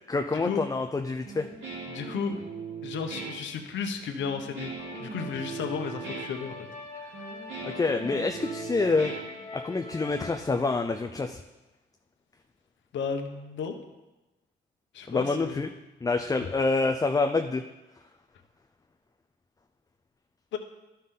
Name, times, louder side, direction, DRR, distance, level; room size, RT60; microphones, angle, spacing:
voice 1, 0.0-1.5 7.6-9.1 9.6-11.4 15.1-15.7 16.0-17.6, left 3 dB, 15° left, 5 dB, 0.4 m, -27 dB
Guitar, 1.3-9.9, right 4 dB, 70° right, 2.7 m, -40 dB
voice 2, 1.9-2.4 2.8-4.7 5.0-6.7 7.0-7.4 12.9-13.8 14.9-15.7 16.4-16.5 20.5-20.6, left 6 dB, 70° left, 5 dB, 1.0 m, -34 dB
sound 1, 4.8-10.4, left 3 dB, 35° left, 1.4 m, -43 dB
11.5 x 5.6 x 3.8 m, 1.0 s
cardioid pair, 90°, 20 cm